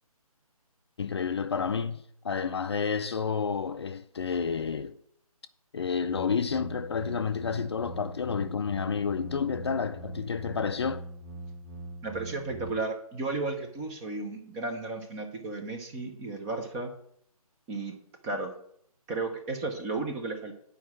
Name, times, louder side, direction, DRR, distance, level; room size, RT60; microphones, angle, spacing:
voice 1, 1.0-4.9 5.7-11.0, left 6 dB, 45° left, 0.5 m, -30 dB
sound 1, 6.1-12.7, right 1 dB, 30° right, 1.6 m, -42 dB
voice 2, 12.0-16.9 17.7-18.0 18.2-18.5 19.1-20.5, right 3 dB, 10° right, 0.6 m, -34 dB
9.4 x 4.9 x 6.1 m
figure-of-eight pair, 150°, 20 cm